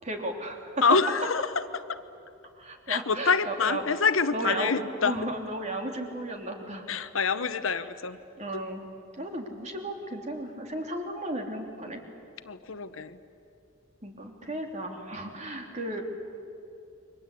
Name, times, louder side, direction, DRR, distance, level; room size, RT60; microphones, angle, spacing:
voice 1, 0.0-0.7 2.5-3.8 4.3-4.7 5.0-6.9 8.4-8.9 9.2-12.0 14.0-16.0, right 1 dB, 35° right, 3 dB, 3.2 m, -34 dB
voice 2, 0.8-2.0 2.9-5.2 6.9-8.2 12.4-13.2 14.4-14.6, left 5 dB, 80° left, 12 dB, 1.1 m, -26 dB
29.5 x 24.0 x 8.5 m, 2.6 s
head